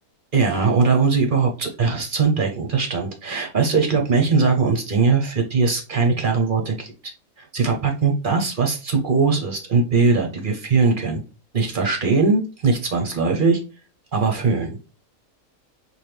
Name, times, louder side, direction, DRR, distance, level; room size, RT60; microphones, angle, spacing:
voice 1, 0.3-6.9 7.4-11.2 11.5-13.6 14.1-14.8, right 4 dB, 45° right, 2 dB, 0.8 m, -20 dB
5.8 x 2.7 x 3.3 m, 0.33 s
omnidirectional pair, 1.6 m